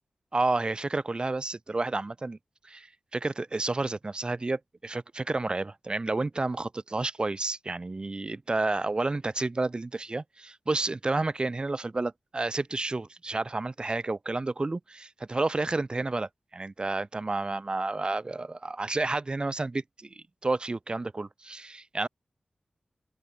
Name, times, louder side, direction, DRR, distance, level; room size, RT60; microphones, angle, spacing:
voice 1, 0.3-2.4 2.6-2.9 3.1-22.1, right 2 dB, 35° right, 1.6 m, -30 dB
wide cardioid pair, 75°, 3 cm